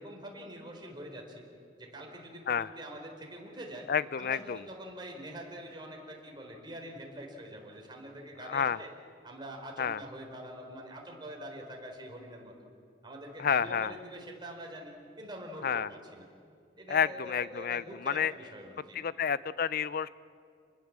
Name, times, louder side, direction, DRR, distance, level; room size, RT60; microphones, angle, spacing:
voice 1, 0.0-1.4 1.8-3.9 4.2-8.9 9.2-12.5 13.0-16.3 16.8-19.0, right 1 dB, 25° right, 1 dB, 4.4 m, -45 dB
voice 2, 3.9-4.6 8.4-8.8 9.8-10.0 13.4-13.9 15.6-15.9 16.9-18.3 18.9-20.1, left 7 dB, 55° left, 17 dB, 0.5 m, -30 dB
29.0 x 20.5 x 7.5 m, 2.4 s
head